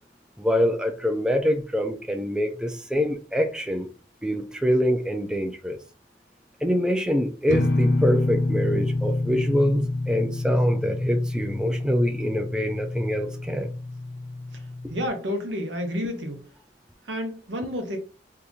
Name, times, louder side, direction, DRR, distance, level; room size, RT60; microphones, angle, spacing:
voice 1, 0.4-3.9 4.2-5.8 6.6-13.7, equal, 5° right, 0.3 m, -25 dB
sound 1, 7.5-15.1, left 2 dB, 80° left, 0.6 m, -28 dB
voice 2, 14.9-16.4 17.1-18.0, equal, 85° right, 0.9 m, -30 dB
2.8 x 2.5 x 3.6 m
head